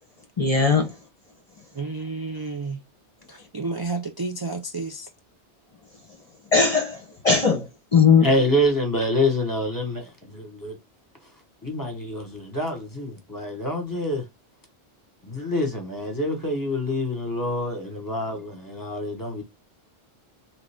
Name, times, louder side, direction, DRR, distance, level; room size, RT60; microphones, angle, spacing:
voice 1, 0.4-0.9 6.5-8.2, left 5 dB, 35° left, 0.8 m, -19 dB
voice 2, 1.7-2.8 3.3-5.1, right 3 dB, 35° right, 0.3 m, -31 dB
voice 3, 8.2-10.8 11.2-11.3 11.6-14.3 15.2-19.4, left 1 dB, 20° left, 1.2 m, -26 dB
3.8 x 3.3 x 3.5 m
omnidirectional pair, 1.1 m